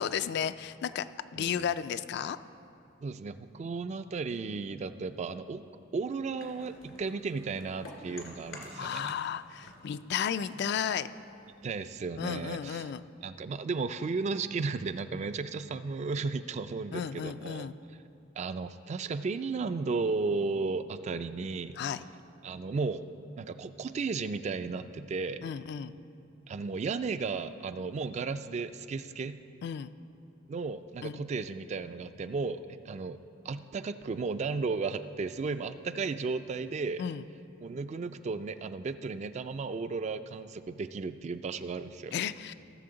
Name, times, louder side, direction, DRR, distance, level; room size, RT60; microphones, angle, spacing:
voice 1, 0.0-2.4 8.7-11.1 12.2-13.0 16.9-17.7 21.8-22.0 25.4-25.9 29.6-29.9 31.0-31.2 37.0-37.2 42.1-42.5, left 8 dB, 60° left, 13 dB, 0.3 m, -33 dB
voice 2, 1.4-1.7 3.0-5.6 5.9-9.1 11.6-12.9 13.2-17.7 18.4-21.8 22.4-23.0 23.4-25.4 26.5-29.4 30.5-37.0 37.6-42.1, right 4 dB, 35° right, 11 dB, 0.3 m, -34 dB
sound 1, 6.4-9.3 9.6-12.0, left 2 dB, 85° left, 2.3 m, -50 dB
16.5 x 6.9 x 3.9 m, 2.6 s
head